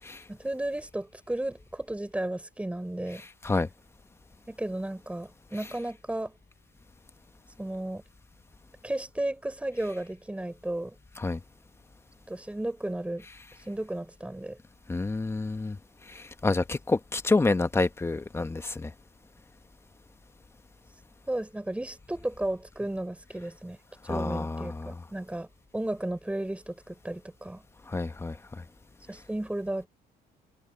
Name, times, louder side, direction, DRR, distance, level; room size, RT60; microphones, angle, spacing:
voice 1, 0.3-3.2 4.5-6.3 7.6-8.0 8.8-11.0 12.3-13.3 13.7-14.6 21.3-23.8 24.0-25.5 25.7-27.6 29.1-29.9, right 1 dB, 5° right, 5.7 m, -34 dB
voice 2, 14.9-15.8 16.1-18.9 24.1-25.0 27.9-28.6, left 3 dB, 15° left, 1.2 m, -28 dB
cardioid pair, 110°, 17 cm